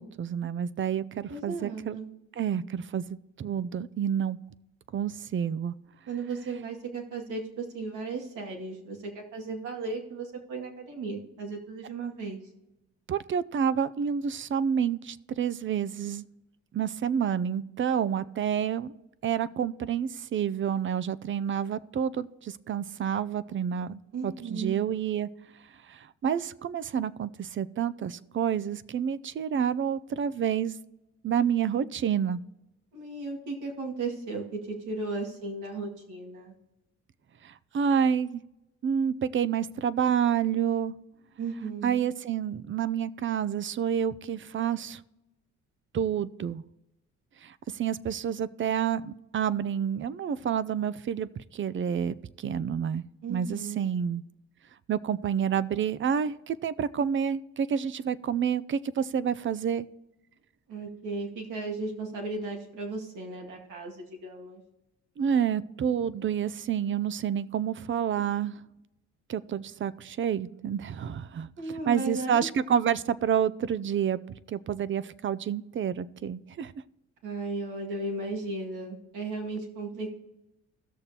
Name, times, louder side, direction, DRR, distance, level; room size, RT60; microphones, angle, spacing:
voice 1, 0.0-2.0 2.4-3.0 3.4-4.4 4.9-5.7 13.1-16.3 16.7-18.9 19.2-25.3 25.9-30.7 31.2-32.4 37.4-38.4 38.8-40.9 41.8-45.0 45.9-46.6 47.4-53.0 53.3-54.2 54.9-59.9 65.2-68.6 69.3-71.5 71.9-74.2 74.5-76.7, right 8 dB, 40° right, 17 dB, 0.5 m, -29 dB
voice 2, 1.3-2.1 6.1-12.4 24.1-24.8 32.9-36.5 41.4-42.1 53.2-53.8 60.7-64.6 71.6-72.5 77.2-80.2, right 3 dB, 85° right, -1 dB, 2.1 m, -35 dB
17.0 x 6.7 x 2.9 m, 0.97 s
cardioid pair, 90°, 30 cm